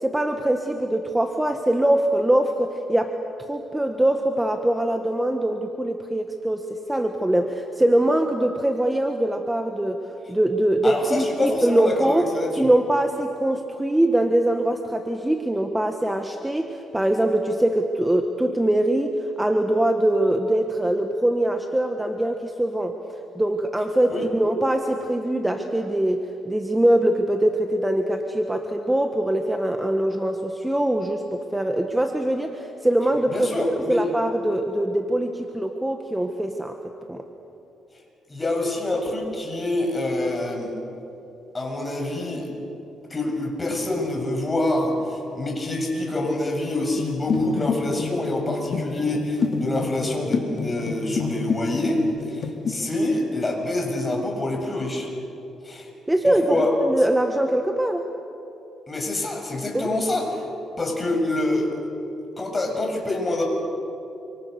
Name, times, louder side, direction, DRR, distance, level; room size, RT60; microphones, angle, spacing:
voice 1, 0.0-3.1 3.5-10.0 10.3-12.3 12.6-23.0 23.3-36.7 37.1-37.2 56.1-58.1 59.7-59.9, right 1 dB, 10° right, 4 dB, 1.6 m, -23 dB
voice 2, 10.8-12.7 24.1-24.2 33.3-34.1 38.3-40.7 41.5-42.5 43.1-55.1 55.6-55.9 56.2-56.7 58.9-60.4 60.8-61.7 62.4-63.4, left 2 dB, 20° left, 1 dB, 7.6 m, -26 dB
sound 1, 47.0-51.6 51.9-52.7, left 5 dB, 55° left, 2.8 m, -28 dB
28.5 x 26.0 x 6.8 m, 2.8 s
cardioid pair, 90°, 0 cm